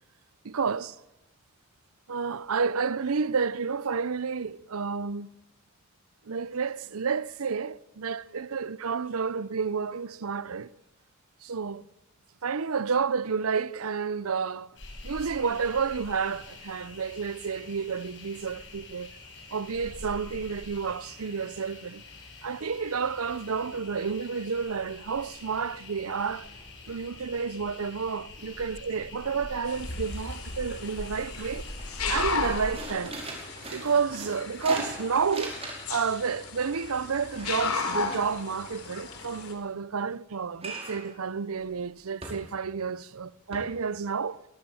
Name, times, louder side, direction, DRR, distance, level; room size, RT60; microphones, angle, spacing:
voice 1, 0.4-1.0 2.1-5.3 6.2-10.7 11.4-11.8 12.4-14.8 15.0-19.1 19.5-22.0 22.4-26.5 26.9-31.7 32.1-33.2 33.7-35.6 35.9-44.4, right 5 dB, 80° right, 0.7 m, -30 dB
sound 1, 14.8-32.8, left 1 dB, 55° left, 6.1 m, -44 dB
sound 2, 29.2-29.7 30.0-30.9 31.3-31.4 31.7-36.0 36.3-38.8 40.6-41.1 41.5-41.7 42.2-42.8 43.1-43.2 43.5-43.6, right 2 dB, 25° right, 5.4 m, -40 dB
sound 3, 29.7-39.5, left 5 dB, 90° left, 3.9 m, -35 dB
23.5 x 21.0 x 7.1 m
head